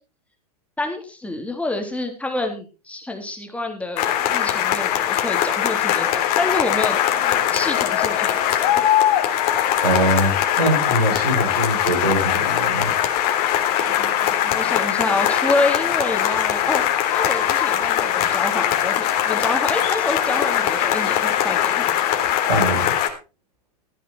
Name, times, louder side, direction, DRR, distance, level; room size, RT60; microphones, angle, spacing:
voice 1, 0.8-6.1 6.4-7.0 7.5-8.8 13.9-16.8 17.1-21.8, left 2 dB, 5° left, 4 dB, 3.3 m, -27 dB
sound 1, 4.0-23.1, left 11 dB, 50° left, 3.3 m, -21 dB
voice 2, 9.8-10.3 10.6-12.9 22.5-22.9, right 1 dB, 90° right, 1 dB, 7.9 m, -22 dB
15.5 x 9.9 x 4.5 m, 0.32 s
hypercardioid pair, 100°, 20 cm